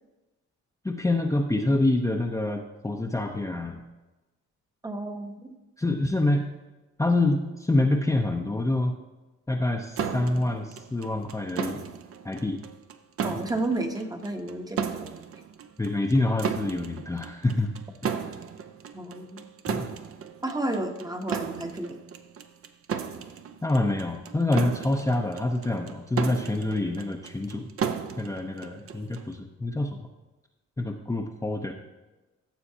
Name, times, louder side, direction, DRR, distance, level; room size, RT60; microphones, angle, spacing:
voice 1, 0.8-3.8 5.8-6.5 7.0-9.0 9.5-11.8 12.2-12.6 13.3-13.4 15.8-17.7 19.7-19.9 23.6-27.7 28.2-30.1 30.8-31.7, left 2 dB, 10° left, 0 dB, 0.7 m, -26 dB
voice 2, 4.8-5.5 13.2-15.1 18.9-19.4 20.4-22.0, right 2 dB, 10° right, 5 dB, 1.0 m, -32 dB
sound 1, 10.0-29.3, right 7 dB, 50° right, 0.7 m, -35 dB
14.5 x 6.9 x 2.8 m, 1.1 s
cardioid pair, 90°, 30 cm